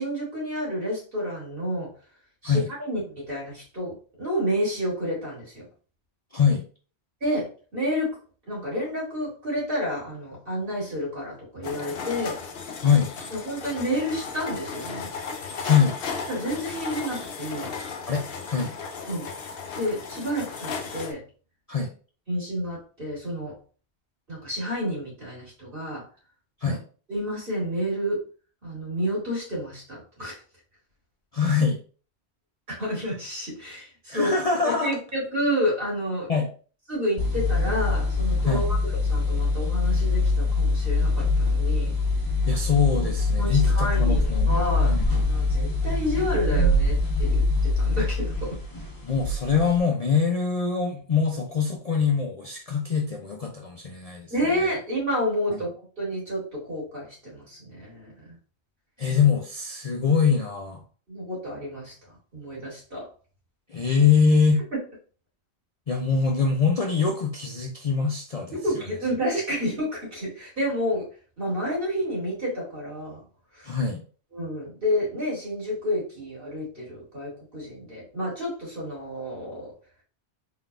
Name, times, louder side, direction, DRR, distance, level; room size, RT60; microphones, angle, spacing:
voice 1, 0.0-1.9 2.4-5.6 7.2-8.1 8.5-12.4 13.3-15.1 16.3-17.7 19.1-19.3 19.8-21.2 22.3-23.5 24.3-26.1 26.7-26.8 27.1-28.2 28.6-30.4 32.8-34.3 34.6-36.3 36.9-41.9 43.4-45.0 45.3-48.6 54.3-55.7 56.0-58.1 61.1-61.9 62.3-63.1 68.5-71.0 71.4-73.2 73.5-73.7 74.3-79.7, equal, 50° right, -5 dB, 2.5 m, -30 dB
sound 1, 11.6-21.1, left 5 dB, 65° left, 0.8 m, -35 dB
voice 2, 15.6-16.0 18.1-18.7 21.7-21.9 26.6-26.8 31.3-31.8 34.1-34.9 36.3-36.5 38.5-38.6 42.5-44.5 44.8-45.1 49.0-54.3 55.5-55.6 59.0-60.8 63.7-64.6 65.9-68.5 73.6-74.0, left 5 dB, 45° left, 1 dB, 0.5 m, -23 dB
sound 2, 37.2-49.8, left 2 dB, 20° left, 1.0 m, -23 dB
4.0 x 4.0 x 2.4 m, 0.39 s
omnidirectional pair, 1.1 m